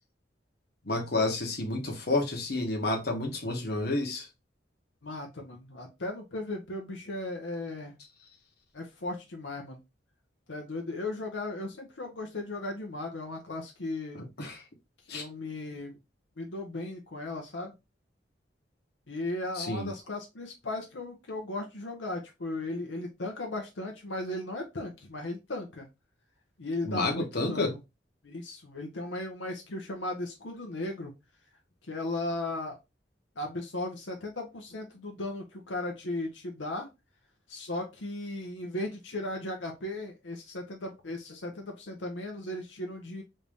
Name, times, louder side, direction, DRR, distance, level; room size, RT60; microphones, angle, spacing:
voice 1, 0.8-4.3 14.1-14.6 15.1-15.2 19.5-19.9 26.8-27.7, left 2 dB, 60° left, 1.1 m, -30 dB
voice 2, 5.0-8.0 8.7-9.8 10.5-14.2 15.1-16.0 16.4-17.7 19.1-25.9 26.6-27.8 28.2-31.1 31.9-32.8 33.4-36.9 37.5-43.2, left 2 dB, 90° left, 0.8 m, -36 dB
3.2 x 2.7 x 3.4 m
head